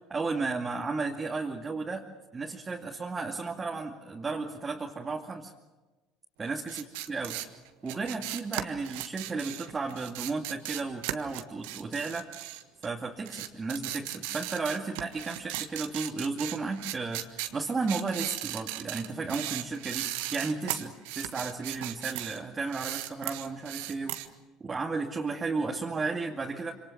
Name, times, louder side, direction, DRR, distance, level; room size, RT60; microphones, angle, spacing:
voice 1, 0.1-2.1 2.3-5.5 6.4-7.4 7.8-12.3 12.8-24.2 24.6-26.7, right 3 dB, 25° right, 0 dB, 2.3 m, -34 dB
sound 1, 6.6-12.9 13.3-22.4 22.7-24.3, right 15 dB, 65° right, 1.5 m, -37 dB
27.0 x 27.0 x 6.3 m, 1.2 s
figure-of-eight pair, 65°, 0 cm